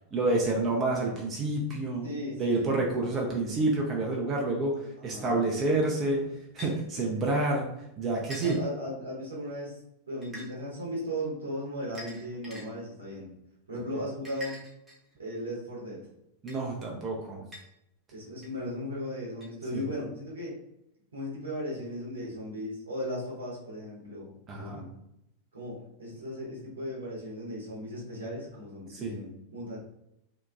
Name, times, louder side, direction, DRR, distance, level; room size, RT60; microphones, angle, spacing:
voice 1, 0.1-2.0 2.4-4.7 5.0-6.3 6.5-7.7 8.0-8.6 16.4-17.4 19.7-19.8 24.5-24.8 28.9-29.1, right 2 dB, 25° right, -1 dB, 0.5 m, -28 dB
voice 2, 2.0-2.8 5.0-5.3 6.9-7.2 8.4-9.8 10.1-13.3 13.7-14.6 15.2-16.0 18.1-20.6 21.1-24.9 25.5-29.8, equal, 75° right, -5 dB, 0.9 m, -37 dB
sound 1, 6.6-6.7 8.3-8.6 10.2-10.5 11.9-12.6 14.2-15.1 16.5-16.6 17.5-17.6 18.4-18.5 19.4-19.5, left 1 dB, 10° right, 0.8 m, -43 dB
2.8 x 2.2 x 2.3 m, 0.82 s
figure-of-eight pair, 90°, 0 cm